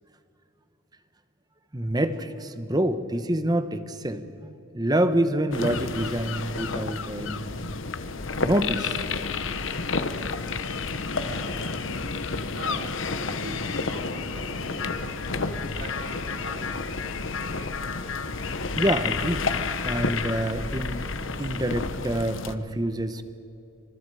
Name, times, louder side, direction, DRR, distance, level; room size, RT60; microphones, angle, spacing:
voice 1, 1.7-7.8 8.4-9.0 18.7-19.5 19.8-21.1 21.4-23.2, right 1 dB, 20° right, 10 dB, 1.1 m, -27 dB
sound 1, 5.5-22.5, left 4 dB, 65° left, 1.1 m, -30 dB
voice 2, 11.2-12.1 12.5-15.1 15.6-17.0 17.5-17.7, right 1 dB, 60° right, 1 dB, 4.1 m, -42 dB
sound 2, 14.7-20.6, left 6 dB, 85° left, 1.6 m, -37 dB
28.5 x 26.5 x 4.9 m, 2.8 s
head